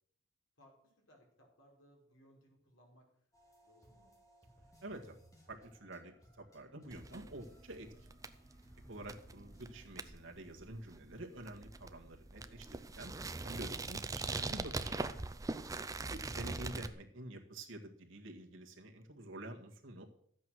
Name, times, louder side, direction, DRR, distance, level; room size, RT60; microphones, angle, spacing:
voice 1, 0.6-3.3 3.6-4.1, equal, 75° left, 0 dB, 4.6 m, -66 dB
sound 1, 3.3-9.9, equal, 15° left, 2.6 m, -62 dB
voice 2, 4.8-5.2 5.5-7.9 8.9-13.1 13.4-15.0 16.0-20.0, right 1 dB, 70° right, 1 dB, 1.9 m, -48 dB
sound 2, 6.9-16.9, right 3 dB, 15° right, 0.5 m, -42 dB
12.5 x 8.4 x 6.3 m, 0.65 s
head